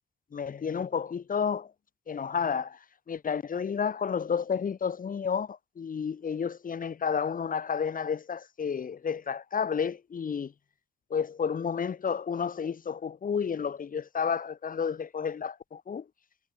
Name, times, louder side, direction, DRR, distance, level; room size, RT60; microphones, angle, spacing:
voice 1, 0.3-1.7 2.1-2.8 3.1-10.5 11.1-16.0, left 6 dB, 45° left, 3.2 m, -31 dB
cardioid pair, 90°, 20 cm